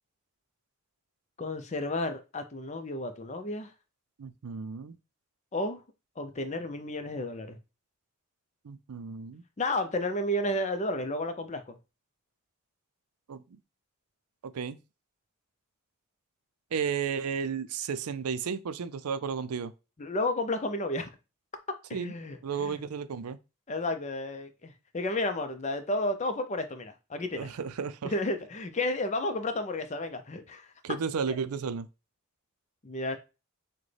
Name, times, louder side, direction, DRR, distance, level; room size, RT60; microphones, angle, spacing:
voice 1, 1.4-3.7 5.5-5.8 6.2-7.6 9.6-11.8 20.0-21.1 21.9-22.8 23.7-27.5 28.0-30.7 31.3-31.4 32.8-33.2, left 1 dB, 30° left, 0.5 m, -32 dB
voice 2, 4.2-5.0 8.6-9.4 13.3-13.6 14.4-14.8 16.7-19.7 21.9-22.1 22.4-23.4 27.4-28.1 30.8-31.9, right 6 dB, 85° right, 0.5 m, -33 dB
6.1 x 2.2 x 3.3 m
head